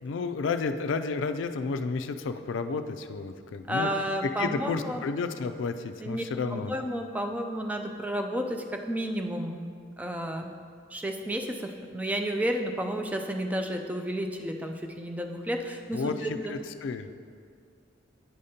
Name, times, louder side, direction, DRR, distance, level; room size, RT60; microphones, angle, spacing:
voice 1, 0.0-3.9 4.4-6.7 15.9-17.1, left 4 dB, 70° left, 9 dB, 0.4 m, -31 dB
voice 2, 3.7-5.1 6.0-6.2 6.5-9.6 10.0-10.6 10.9-16.6, equal, 10° right, 3 dB, 0.4 m, -31 dB
10.0 x 5.1 x 2.8 m, 2.1 s
head